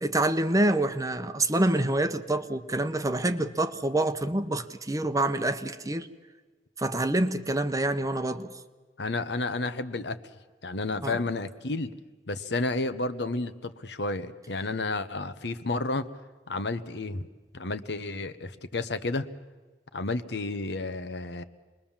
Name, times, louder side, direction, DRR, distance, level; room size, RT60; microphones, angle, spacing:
voice 1, 0.0-6.1 6.8-8.5 11.0-11.2, right 1 dB, 20° right, 0.9 m, -26 dB
voice 2, 9.0-10.2 10.6-11.9 12.3-16.0 16.5-17.3 17.5-19.3 19.9-21.4, left 2 dB, 70° left, 1.1 m, -31 dB
27.5 x 21.5 x 7.3 m
head